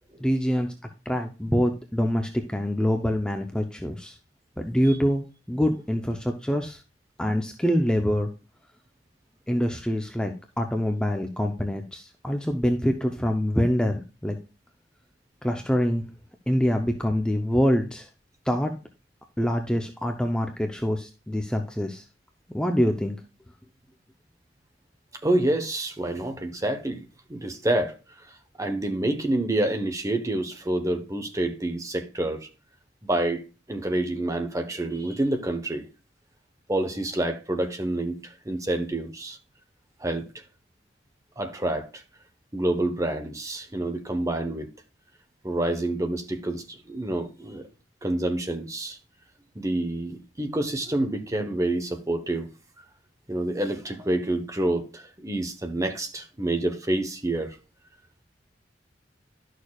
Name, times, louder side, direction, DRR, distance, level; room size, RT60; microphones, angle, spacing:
voice 1, 0.2-0.7 1.1-4.2 4.6-6.8 7.2-8.3 9.5-10.3 10.6-14.4 15.4-16.0 16.5-18.1 18.5-18.7 19.4-22.0 22.5-23.2, equal, 5° left, 0.6 m, -25 dB
voice 2, 25.2-28.0 28.6-32.5 33.0-35.8 36.7-39.4 40.0-40.3 41.4-42.0 42.5-44.7 45.4-47.6 48.0-49.0 49.5-52.5 53.3-57.6, right 1 dB, 20° right, 1.0 m, -28 dB
11.5 x 6.4 x 2.3 m
head